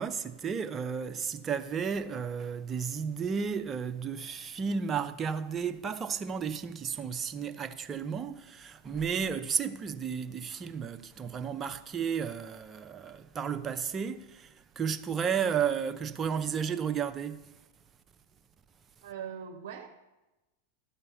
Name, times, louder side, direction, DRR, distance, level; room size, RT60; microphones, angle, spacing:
voice 1, 0.0-17.4, right 7 dB, 25° right, 0.7 m, -33 dB
voice 2, 19.0-19.9, right 8 dB, 60° right, 0.8 m, -41 dB
12.0 x 5.6 x 6.9 m
figure-of-eight pair, 90°, 0 cm